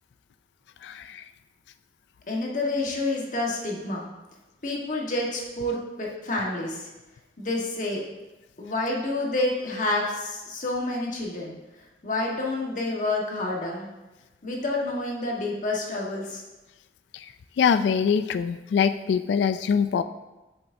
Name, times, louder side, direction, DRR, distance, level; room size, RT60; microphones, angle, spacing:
voice 1, 0.8-1.2 17.1-17.3 17.6-20.0, left 6 dB, 80° left, 11 dB, 0.3 m, -23 dB
voice 2, 2.3-4.1 4.6-6.9 7.4-8.0 8.6-11.5 12.0-13.9 14.4-16.4, left 2 dB, 45° left, -2 dB, 1.4 m, -28 dB
7.6 x 7.3 x 2.7 m, 1.1 s
head